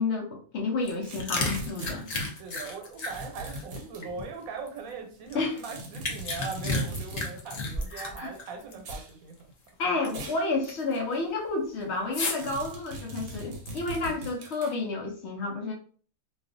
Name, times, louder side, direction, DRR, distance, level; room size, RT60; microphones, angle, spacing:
voice 1, 0.0-2.1 5.3-5.6 7.9-8.3 9.8-15.7, left 3 dB, 65° left, 1 dB, 0.7 m, -30 dB
sound 1, 0.8-4.8 5.3-8.8 9.0-9.1 9.7-10.3 10.6-11.0 12.1-12.5 13.1-14.0, left 2 dB, 90° left, 0.3 m, -33 dB
sound 2, 1.0-2.3 3.1-4.0 5.6-7.3 8.8-9.1 10.1-10.5 10.9-11.0 12.4-14.8, right 2 dB, 65° right, 0.9 m, -40 dB
voice 2, 2.3-9.3, right 5 dB, 85° right, 3 dB, 1.1 m, -40 dB
2.4 x 2.3 x 2.5 m, 0.44 s
omnidirectional pair, 1.4 m